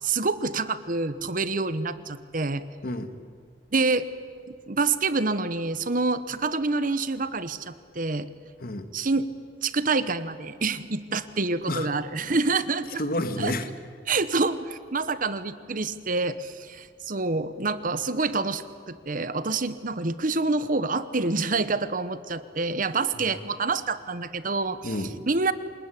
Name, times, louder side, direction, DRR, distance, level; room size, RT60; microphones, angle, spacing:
voice 1, 0.0-2.6 3.7-4.1 4.5-8.3 8.9-9.3 9.6-13.0 13.4-13.5 14.1-24.9 25.3-25.5, right 3 dB, 50° right, 13 dB, 1.1 m, -27 dB
voice 2, 2.8-3.2 8.6-8.9 11.7-11.9 13.0-13.7 24.8-25.2, left 1 dB, 55° left, 9 dB, 1.8 m, -30 dB
27.0 x 19.5 x 10.0 m, 2.1 s
head